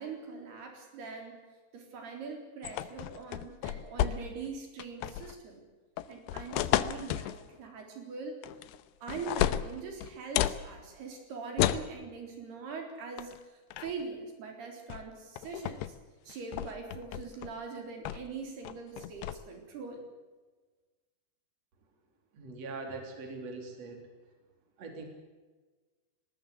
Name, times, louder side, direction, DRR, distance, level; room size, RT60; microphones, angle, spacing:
voice 1, 0.0-1.4 1.7-5.6 6.1-8.4 9.0-16.0 16.3-20.0, right 5 dB, 70° right, 3 dB, 5.8 m, -42 dB
sound 1, 2.6-4.5 4.8-5.4 6.0-7.4 8.4-8.8 9.1-10.6 11.6-11.9 13.2-13.4 13.7-14.0 14.9-15.1 15.4-15.9 16.3-17.5 18.1-18.3 18.7-19.4, left 13 dB, 90° left, 3.0 m, -32 dB
voice 2, 22.3-24.0 24.8-25.0, right 3 dB, 40° right, 3 dB, 4.3 m, -41 dB
20.0 x 19.0 x 8.3 m, 1.3 s
omnidirectional pair, 4.7 m